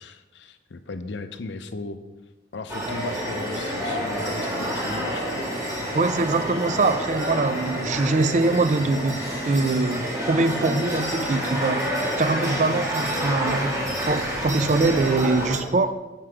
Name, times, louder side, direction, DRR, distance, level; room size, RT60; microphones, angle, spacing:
voice 1, 0.0-2.0 2.5-5.3, left 3 dB, 70° left, 10 dB, 0.5 m, -36 dB
sound 1, 2.7-15.6, equal, 15° right, 1.4 m, -28 dB
sound 2, 2.8-13.6, left 2 dB, 35° left, 1.6 m, -39 dB
voice 2, 5.9-11.9 12.2-13.8 14.1-16.0, right 3 dB, 40° right, 11 dB, 0.4 m, -23 dB
7.6 x 4.6 x 4.9 m, 1.1 s
head